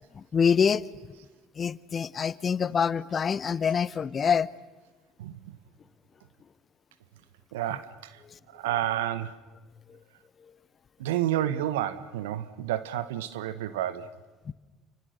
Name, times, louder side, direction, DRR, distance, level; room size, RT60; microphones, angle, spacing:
voice 1, 0.1-0.8 1.6-4.5 9.9-10.0 14.5-14.6, left 6 dB, 40° left, 1.0 m, -25 dB
voice 2, 5.2-5.6 7.5-8.2 8.5-9.4 11.0-14.1, right 12 dB, 85° right, 1.3 m, -30 dB
29.0 x 25.0 x 6.7 m
hypercardioid pair, 70°, 0 cm